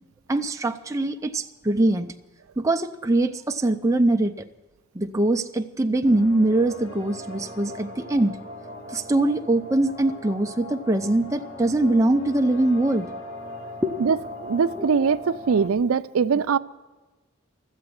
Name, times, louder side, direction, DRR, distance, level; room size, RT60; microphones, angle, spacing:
voice 1, 0.3-2.1 2.6-4.3 4.9-8.4 8.9-13.1 13.8-14.1 14.7-14.9, right 2 dB, 15° right, 5 dB, 0.5 m, -22 dB
sound 1, 6.0-15.7, left 1 dB, 70° left, 1.9 m, -39 dB
voice 2, 14.4-16.6, right 6 dB, 85° right, 12 dB, 0.4 m, -22 dB
13.5 x 8.0 x 9.4 m, 1.2 s
head